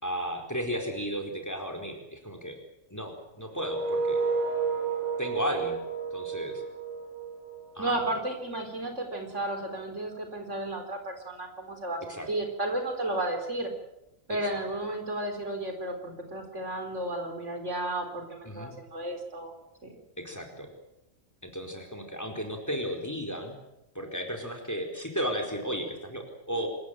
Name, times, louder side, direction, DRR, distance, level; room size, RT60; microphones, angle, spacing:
voice 1, 0.0-2.6 2.9-4.2 5.2-5.8 6.1-6.6 7.7-8.2 12.1-12.3 14.5-14.6 18.4-18.7 20.2-20.7 21.4-23.6 23.9-26.7, equal, 10° left, 4 dB, 4.4 m, -34 dB
sound 1, 3.5-8.4, right 4 dB, 80° right, 8.4 m, -31 dB
voice 2, 7.8-13.7 14.3-19.5 19.8-19.9, right 1 dB, 60° right, 4 dB, 4.5 m, -33 dB
26.5 x 15.5 x 9.0 m, 0.89 s
omnidirectional pair, 1.4 m